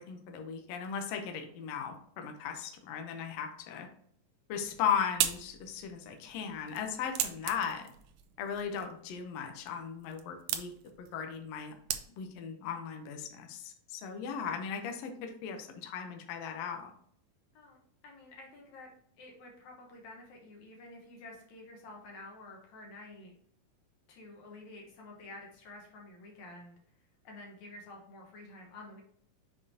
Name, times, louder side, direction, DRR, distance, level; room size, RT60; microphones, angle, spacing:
voice 1, 0.0-3.9 4.5-7.8 8.4-10.7 11.0-11.7 12.2-16.9, left 7 dB, 80° left, 5 dB, 1.4 m, -37 dB
sound 1, 4.5-12.5, right 11 dB, 80° right, 1.9 m, -39 dB
voice 2, 18.0-18.9 19.2-23.3 24.1-26.8 27.2-29.0, left 2 dB, 65° left, -1 dB, 2.3 m, -50 dB
6.9 x 5.3 x 2.8 m, 0.63 s
omnidirectional pair, 4.0 m